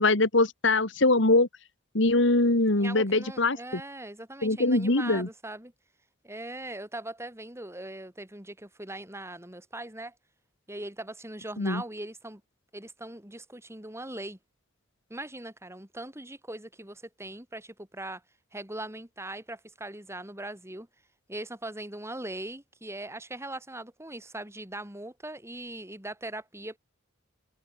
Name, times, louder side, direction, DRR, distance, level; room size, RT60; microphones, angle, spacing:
voice 1, 0.0-1.5 1.9-3.8 4.4-5.3 11.6-11.8, left 2 dB, 70° left, 2.2 m, -23 dB
voice 2, 2.8-5.7 6.2-10.1 10.7-12.4 12.7-14.4 15.1-18.2 18.5-20.9 21.3-26.8, right 1 dB, 15° right, 7.2 m, -40 dB
head